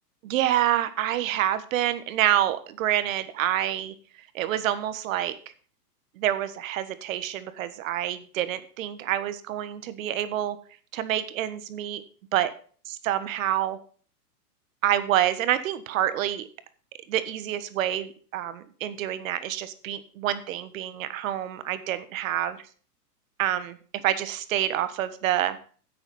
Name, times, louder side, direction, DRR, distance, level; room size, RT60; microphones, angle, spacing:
voice 1, 0.2-3.9 4.3-5.4 6.2-10.6 10.9-12.0 12.3-12.5 12.9-13.8 14.8-16.5 17.1-22.6 23.4-25.6, right 12 dB, 55° right, 13 dB, 1.4 m, -27 dB
10.0 x 8.1 x 5.6 m, 0.44 s
hypercardioid pair, 135°, 48 cm